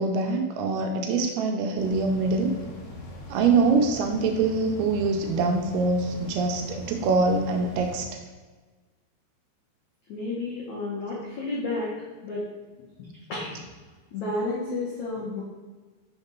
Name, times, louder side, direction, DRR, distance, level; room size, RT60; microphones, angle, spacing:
voice 1, 0.0-2.5 3.3-8.1, right 4 dB, 80° right, 3 dB, 2.5 m, -24 dB
sound 1, 1.8-8.0, left 1 dB, 60° left, 2.1 m, -41 dB
voice 2, 10.1-11.9 12.2-12.4 13.0-13.6 14.1-15.4, left 2 dB, 90° left, -6 dB, 1.6 m, -31 dB
5.9 x 4.1 x 5.2 m, 1.3 s
omnidirectional pair, 4.9 m